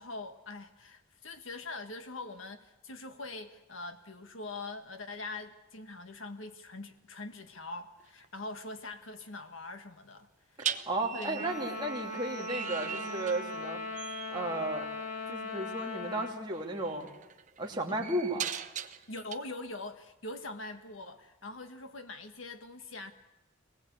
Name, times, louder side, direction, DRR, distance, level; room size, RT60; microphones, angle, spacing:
voice 1, 0.0-10.6 11.1-11.7 19.1-23.1, left 2 dB, 80° left, 1.8 m, -43 dB
sound 1, 8.0-8.2 10.6-13.7 13.9-14.4 15.9-16.0 16.5-19.3, right 8 dB, 40° right, 0.8 m, -40 dB
voice 2, 10.9-13.8 14.3-14.8 15.3-17.1 17.6-18.5, right 2 dB, 20° right, 2.8 m, -34 dB
Trumpet, 11.3-16.4, left 2 dB, 40° left, 2.7 m, -39 dB
23.0 x 19.5 x 8.3 m
head